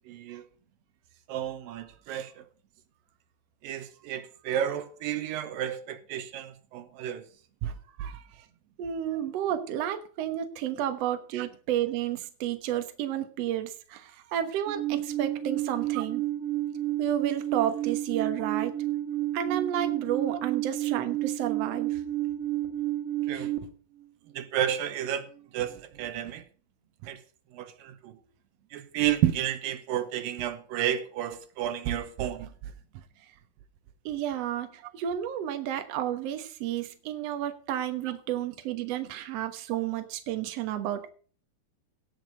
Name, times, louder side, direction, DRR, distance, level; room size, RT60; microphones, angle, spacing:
voice 1, 0.1-0.5 1.3-2.5 3.6-7.3 7.6-7.7 8.0-8.2 11.3-11.5 16.0-16.1 23.3-23.5 24.4-25.3 25.5-26.4 27.0-27.2 27.5-28.1 28.7-32.5, right 11 dB, 80° right, 2.5 m, -31 dB
voice 2, 8.8-16.2 17.0-18.7 19.3-22.0 34.1-41.1, right 11 dB, 60° right, 1.9 m, -31 dB
Alarm, 14.7-23.6, right 13 dB, 35° right, 1.3 m, -30 dB
17.0 x 6.6 x 5.1 m
omnidirectional pair, 4.1 m